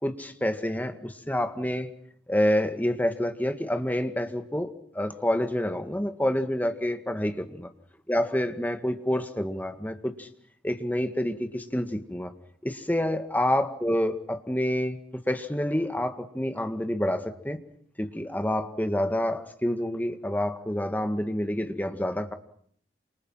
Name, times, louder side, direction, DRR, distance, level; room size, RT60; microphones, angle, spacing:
voice 1, 0.0-1.9 2.3-7.7 8.1-10.3 10.6-12.3 12.6-17.6 18.0-22.3, left 1 dB, 10° left, 2.1 m, -28 dB
29.0 x 28.0 x 5.8 m
head